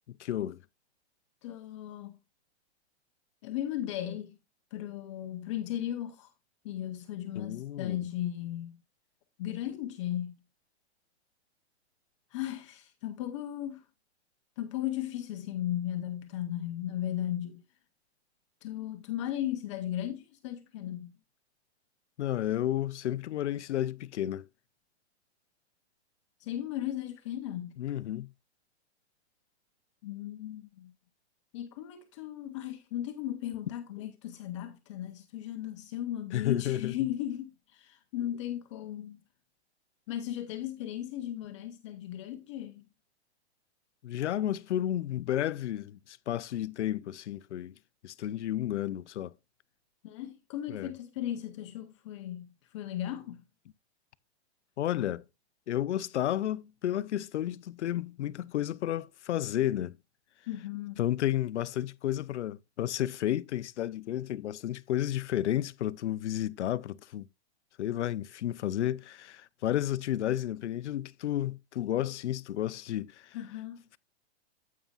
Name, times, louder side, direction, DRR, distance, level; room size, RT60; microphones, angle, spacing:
voice 1, 0.2-0.6 7.4-8.0 22.2-24.4 27.8-28.3 36.3-36.9 44.0-47.7 48.0-49.3 50.7-50.9 54.8-55.2 55.7-60.0 61.0-67.3 67.8-73.4, left 12 dB, 85° left, 0.6 m, -32 dB
voice 2, 1.4-2.2 3.4-4.4 4.7-6.3 6.6-8.8 9.4-10.4 12.3-13.9 14.6-17.6 18.6-21.1 26.4-27.8 30.0-30.9 31.5-39.2 40.1-42.8 50.0-53.4 60.5-61.1 73.3-73.9, left 12 dB, 25° left, 0.7 m, -36 dB
9.2 x 8.5 x 2.4 m
hypercardioid pair, 165°, 34 cm